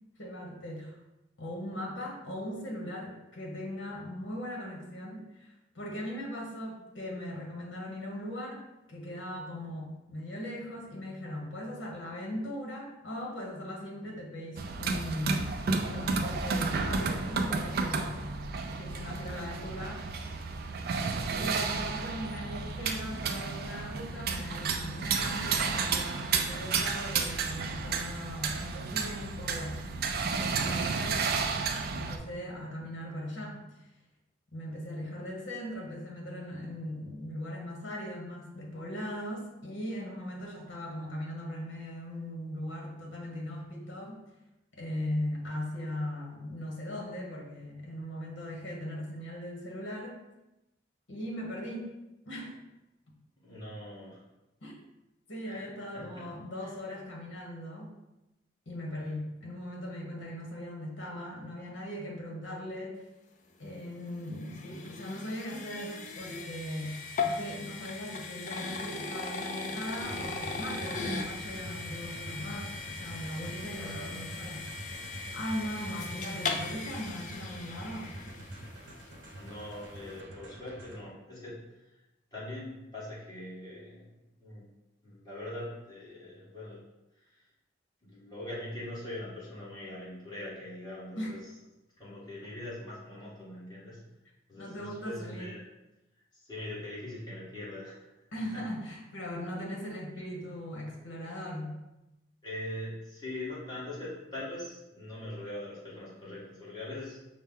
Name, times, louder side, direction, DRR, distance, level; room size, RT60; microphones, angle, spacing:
voice 1, 0.2-0.9 1.4-8.6 8.9-18.3 18.7-20.0 21.4-29.9 30.2-31.3 31.9-33.6 34.5-44.2 44.7-50.2 51.1-51.9 52.3-52.6 54.6-54.8 55.3-57.9 58.7-63.0 63.6-74.7 74.9-75.0 75.3-78.2 91.2-91.3 94.6-95.5 98.3-101.8, left 1 dB, 80° left, -1 dB, 0.9 m, -39 dB
sound 1, 14.6-32.2, right 4 dB, 50° right, 0.3 m, -32 dB
voice 2, 20.8-21.4 53.4-54.3 55.4-56.3 56.6-56.7 73.7-74.4 79.4-81.6 82.3-84.7 85.0-86.8 87.2-87.4 88.0-91.4 92.0-94.0 94.5-95.6 96.3-98.0 100.2-100.3 102.4-107.2, left 1 dB, 20° left, -8 dB, 1.4 m, -42 dB
sound 2, 63.7-78.9, left 4 dB, 40° left, 0.3 m, -38 dB
sound 3, 69.9-81.0, right 1 dB, 70° right, 0.7 m, -46 dB
5.3 x 2.1 x 3.6 m, 0.95 s
head